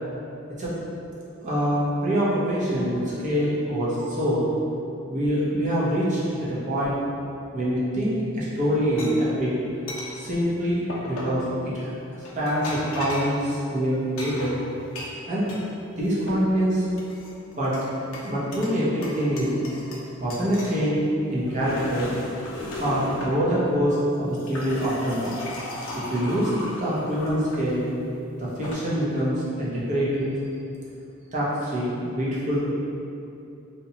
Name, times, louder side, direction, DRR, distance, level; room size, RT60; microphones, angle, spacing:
voice 1, 1.4-4.5 5.1-6.9 7.5-9.5 10.2-11.9 12.3-14.6 15.3-15.5 16.0-16.8 17.6-17.7 18.2-19.5 20.2-21.0 21.3-22.1 22.7-25.3 25.9-26.5 26.8-27.8 28.4-30.3 31.3-32.6, equal, 35° right, -8 dB, 0.6 m, -25 dB
sound 1, 9.0-9.1 9.9-10.1 10.9-11.4 12.2-13.4 14.2-15.6 16.0-16.6 17.0-17.9 18.1-18.8 19.0-20.0 20.3-20.8 21.3-23.4 24.1-27.6 28.4-28.7, left 1 dB, 65° left, 0.5 m, -35 dB
2.8 x 2.2 x 2.8 m, 2.7 s
head